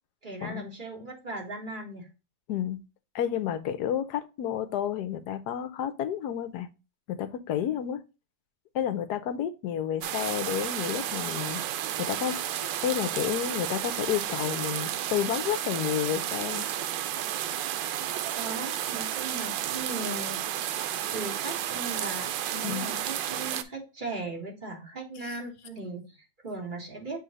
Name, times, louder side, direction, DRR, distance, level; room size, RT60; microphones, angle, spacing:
voice 1, 0.2-2.1 18.3-20.4 21.1-27.2, right 2 dB, 30° right, 1.8 m, -38 dB
voice 2, 2.5-2.8 3.1-6.7 7.1-8.0 8.7-11.6 12.0-12.6 12.8-16.7 22.6-22.9 25.3-25.4, left 10 dB, 70° left, 1.1 m, -30 dB
sound 1, 10.0-23.6, right 11 dB, 85° right, 1.3 m, -32 dB
8.0 x 3.1 x 3.8 m
omnidirectional pair, 1.9 m